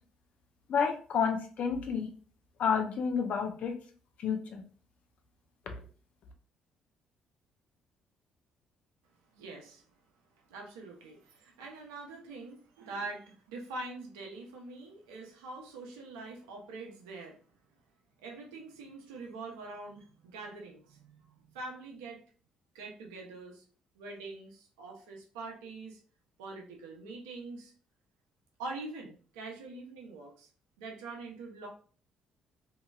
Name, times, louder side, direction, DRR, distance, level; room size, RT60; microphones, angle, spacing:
voice 1, 0.7-2.1 2.6-3.7 4.2-4.6, left 6 dB, 60° left, 4 dB, 0.7 m, -30 dB
voice 2, 9.3-9.8 10.5-17.4 18.2-22.2 22.7-23.6 23.9-26.0 26.4-27.7 28.6-30.5 30.8-31.7, right 3 dB, 85° right, 1 dB, 0.8 m, -44 dB
3.0 x 2.7 x 2.4 m, 0.40 s
hypercardioid pair, 55°, 3 cm